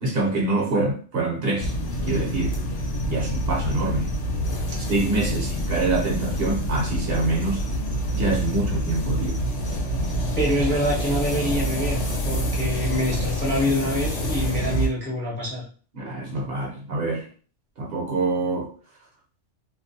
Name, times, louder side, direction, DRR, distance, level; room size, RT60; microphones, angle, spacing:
voice 1, 0.0-1.7 2.1-2.5 3.0-4.1 4.9-7.6 8.1-9.4 15.9-17.2 17.8-18.7, right 2 dB, 60° right, 0.8 m, -25 dB
sound 1, 1.6-14.9, equal, 75° left, 0.9 m, -27 dB
voice 2, 10.4-15.7, left 1 dB, 15° left, 0.5 m, -26 dB
2.4 x 2.1 x 2.6 m
omnidirectional pair, 1.2 m